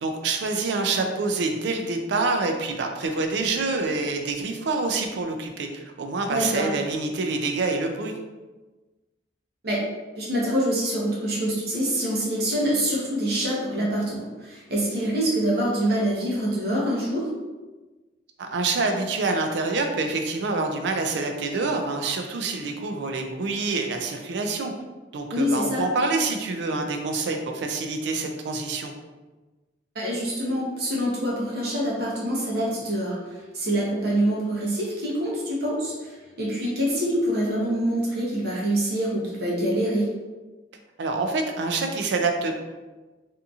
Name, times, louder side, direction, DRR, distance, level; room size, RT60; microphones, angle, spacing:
voice 1, 0.0-8.1 18.4-24.7 25.1-28.9 41.0-42.5, right 3 dB, 75° right, 4 dB, 0.4 m, -26 dB
voice 2, 6.3-6.7 9.6-9.8 10.2-17.3 25.3-25.8 29.9-40.1, right 1 dB, 55° right, -4 dB, 0.8 m, -25 dB
2.8 x 2.6 x 2.4 m, 1.2 s
head